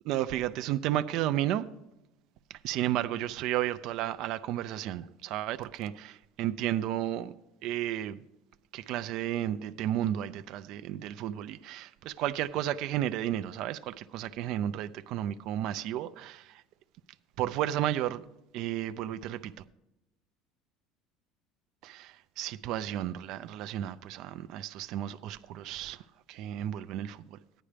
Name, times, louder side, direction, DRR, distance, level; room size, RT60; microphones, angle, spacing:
voice 1, 0.0-1.7 2.5-7.3 7.6-8.2 8.7-16.6 17.4-18.2 18.5-19.5 21.8-27.4, right 12 dB, 45° right, 0.4 m, -33 dB
14.5 x 9.9 x 3.4 m
cardioid pair, 175°, 0 cm